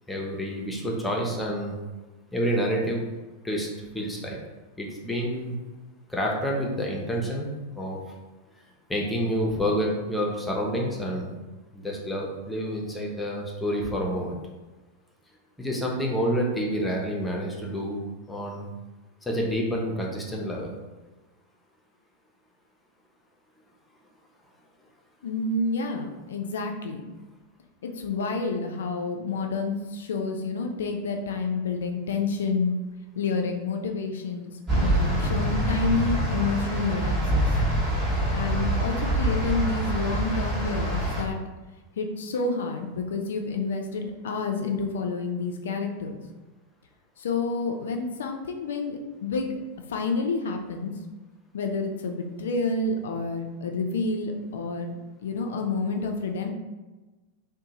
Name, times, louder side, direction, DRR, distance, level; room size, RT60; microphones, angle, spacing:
voice 1, 0.1-1.8 2.3-3.0 3.4-3.7 3.9-4.4 4.8-5.6 6.1-7.5 7.7-8.0 8.9-11.3 11.7-14.4 15.6-18.0 18.3-18.7 19.2-20.7, equal, 5° left, -2 dB, 0.5 m, -28 dB
voice 2, 25.2-27.0 27.8-32.8 33.1-37.5 38.3-41.4 42.0-46.2 47.2-49.6 49.9-50.9 51.5-56.5, left 4 dB, 60° left, 4 dB, 0.3 m, -29 dB
sound 1, 34.7-41.2, right 1 dB, 25° right, 0.8 m, -25 dB
2.6 x 2.1 x 2.8 m, 1.2 s
figure-of-eight pair, 90°, 0 cm